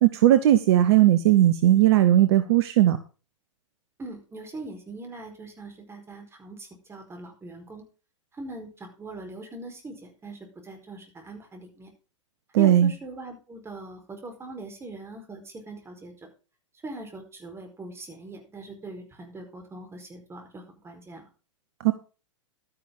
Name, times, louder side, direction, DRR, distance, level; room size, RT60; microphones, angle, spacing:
voice 1, 0.0-3.0 12.5-12.9 21.8-21.9, right 13 dB, 55° right, 12 dB, 1.1 m, -18 dB
voice 2, 4.0-7.8 8.3-11.9 12.6-16.1 16.8-21.2, right 2 dB, 15° right, 4 dB, 4.7 m, -41 dB
12.5 x 10.0 x 3.9 m, 0.34 s
figure-of-eight pair, 105°, 16 cm